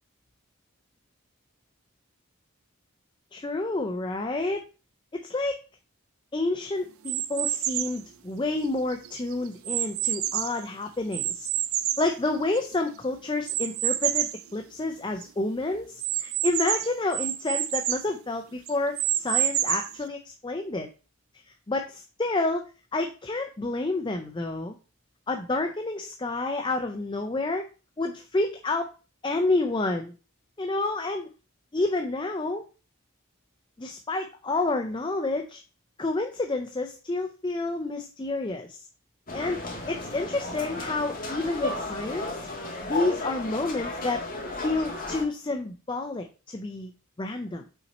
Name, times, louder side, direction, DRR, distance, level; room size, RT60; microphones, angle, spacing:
voice 1, 3.3-4.6 5.1-5.6 6.3-11.5 12.0-20.9 21.5-22.6 22.9-24.7 25.3-27.7 28.0-28.9 29.2-30.1 30.6-31.3 31.7-32.6 33.8-35.6 36.0-38.9 39.3-39.6 39.9-42.4 42.8-44.2 44.6-46.9 47.2-47.6, left 2 dB, 20° left, 4 dB, 0.4 m, -29 dB
sound 1, 7.0-8.0 8.6-10.6 11.1-12.8 13.5-14.4 14.9-15.0 15.2-15.3 16.0-18.1 18.7-20.0, right 12 dB, 75° right, 0.5 m, -28 dB
sound 2, 39.3-45.2, left 2 dB, 40° left, 1.6 m, -34 dB
5.7 x 4.1 x 4.1 m, 0.34 s
head